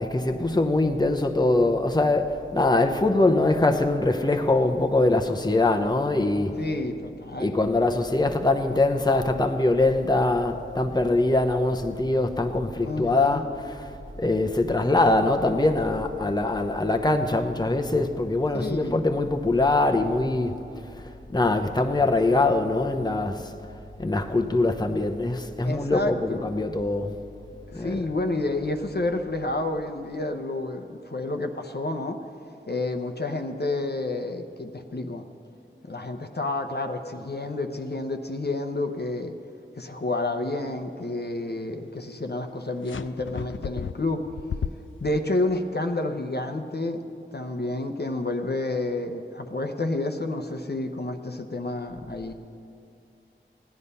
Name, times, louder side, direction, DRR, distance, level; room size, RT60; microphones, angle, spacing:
voice 1, 0.0-6.5 7.4-13.4 13.7-13.8 14.2-20.6 21.3-23.5 24.0-27.1 27.7-28.0, left 2 dB, 20° left, 5 dB, 0.8 m, -23 dB
voice 2, 6.6-7.7 12.8-13.5 18.5-19.0 25.6-26.4 27.7-32.2 32.7-35.3 35.9-39.3 39.8-44.3 45.0-47.0 47.3-52.3, left 2 dB, 55° left, 5 dB, 0.9 m, -29 dB
sound 1, 42.9-45.2, left 7 dB, 70° left, 0.4 m, -34 dB
15.5 x 10.0 x 5.5 m, 2.7 s
wide cardioid pair, 45°, 21 cm